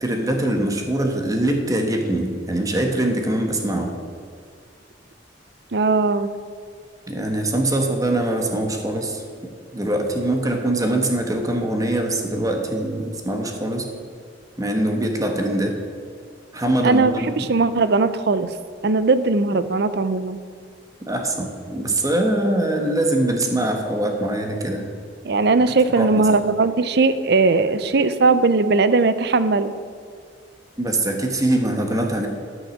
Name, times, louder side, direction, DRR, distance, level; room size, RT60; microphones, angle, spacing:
voice 1, 0.0-3.9 7.1-9.2 9.7-13.9 14.6-15.8 16.5-17.4 21.1-24.9 26.0-26.3 30.8-32.3, right 1 dB, 20° right, 3 dB, 1.3 m, -23 dB
voice 2, 5.7-6.3 16.8-18.5 18.8-20.4 25.2-29.7, right 3 dB, 65° right, 13 dB, 0.6 m, -19 dB
12.5 x 6.4 x 6.5 m, 2.1 s
head